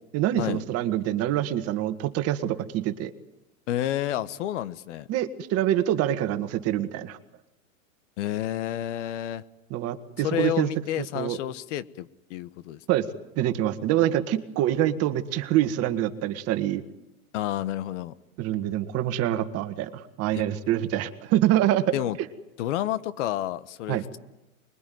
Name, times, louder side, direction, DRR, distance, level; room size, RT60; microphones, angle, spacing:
voice 1, 0.1-3.1 5.1-7.2 9.7-10.7 11.0-11.4 12.9-13.1 13.4-16.8 18.4-21.9 23.9-24.0, right 12 dB, 35° right, 10 dB, 1.9 m, -25 dB
voice 2, 3.7-5.1 8.2-9.4 10.2-12.8 17.3-18.1 20.3-20.4 21.9-22.2 22.6-24.2, left 12 dB, 55° left, 16 dB, 1.3 m, -30 dB
24.5 x 22.0 x 9.4 m, 0.94 s
hypercardioid pair, 135°, 42 cm